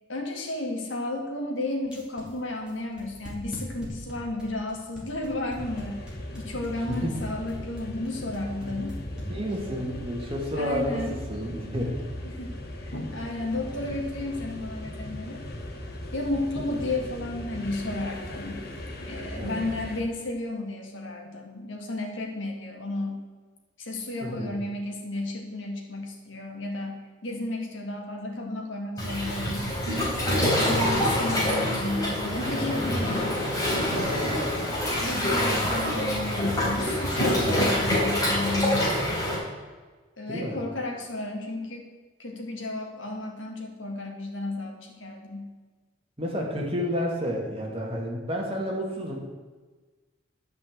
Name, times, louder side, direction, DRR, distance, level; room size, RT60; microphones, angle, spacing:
voice 1, 0.1-6.0 6.4-9.0 10.6-11.2 12.2-15.4 16.1-18.6 19.0-23.2 23.8-29.7 30.3-33.4 35.0-38.9 40.2-41.9 42.2-45.5, left 2 dB, 75° left, 1 dB, 2.1 m, -33 dB
sound 1, 1.8-9.8, equal, 5° right, 2.6 m, -44 dB
sound 2, 5.6-20.0, left 1 dB, 50° left, 1.4 m, -38 dB
voice 2, 9.3-11.0 11.3-12.0 19.4-19.7 24.2-24.5 30.5-31.2 35.3-35.6 40.3-40.6 46.2-49.2, equal, 30° right, -1 dB, 2.2 m, -31 dB
Waves surf, 29.0-39.3, left 1 dB, 20° left, 3.7 m, -26 dB
10.5 x 5.7 x 7.9 m, 1.3 s
head